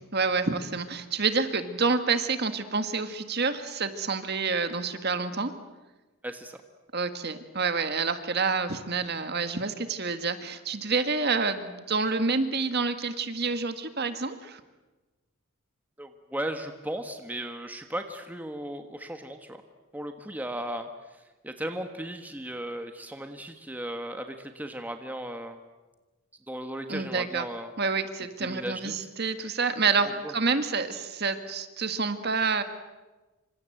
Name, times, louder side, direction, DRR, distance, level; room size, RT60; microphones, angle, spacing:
voice 1, 0.1-5.5 6.9-14.6 26.9-27.5 27.8-32.6, right 4 dB, 50° right, 9 dB, 1.8 m, -28 dB
voice 2, 6.2-6.6 16.0-19.6 19.9-20.9 21.4-25.6 26.5-27.7 28.4-29.0 30.2-30.3, right 1 dB, 10° right, 6 dB, 1.4 m, -36 dB
27.0 x 25.5 x 7.8 m, 1.2 s
head